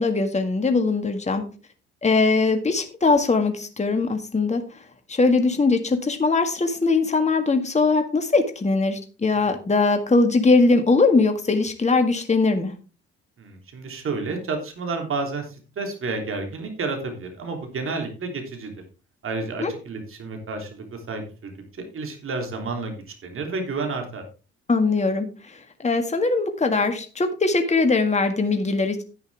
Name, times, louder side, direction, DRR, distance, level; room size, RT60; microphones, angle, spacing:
voice 1, 0.0-1.5 2.0-4.6 5.1-12.7 19.6-19.7 24.7-29.0, left 3 dB, 20° left, 6 dB, 1.9 m, -21 dB
voice 2, 13.4-18.7 19.2-21.5 21.8-24.2, right 3 dB, 40° right, 3 dB, 3.4 m, -30 dB
11.0 x 10.5 x 3.5 m, 0.34 s
figure-of-eight pair, 50°, 32 cm